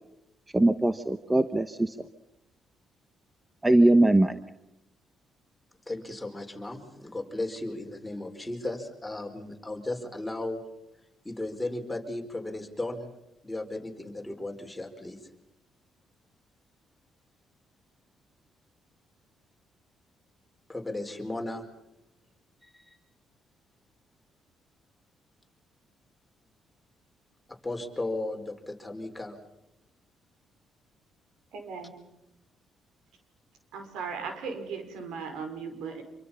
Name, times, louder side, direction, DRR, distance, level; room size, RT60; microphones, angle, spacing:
voice 1, 0.5-1.9 3.6-4.4, right 1 dB, 15° right, 10 dB, 1.1 m, -21 dB
voice 2, 5.9-10.6 11.2-13.1 13.4-15.2 20.7-21.6 22.6-23.0 27.6-29.4, left 2 dB, 10° left, 3 dB, 4.4 m, -35 dB
voice 3, 31.5-31.9 33.7-36.0, right 5 dB, 85° right, 6 dB, 5.4 m, -37 dB
26.5 x 24.5 x 5.6 m, 0.89 s
cardioid pair, 90°, 0 cm